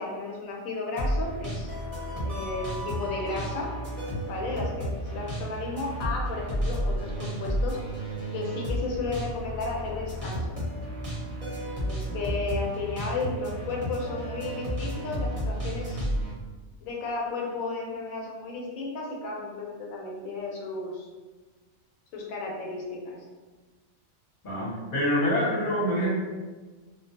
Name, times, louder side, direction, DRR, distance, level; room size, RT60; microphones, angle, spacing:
voice 1, 0.0-1.7 2.2-3.7 4.3-7.8 8.3-10.6 11.8-16.1 16.8-21.1 22.1-23.2, left 3 dB, 80° left, -1 dB, 1.0 m, -33 dB
sound 1, 1.0-16.3, equal, 30° right, 0.8 m, -32 dB
voice 2, 24.4-26.1, equal, 40° left, -7 dB, 0.9 m, -26 dB
2.4 x 2.2 x 2.7 m, 1.3 s
omnidirectional pair, 1.4 m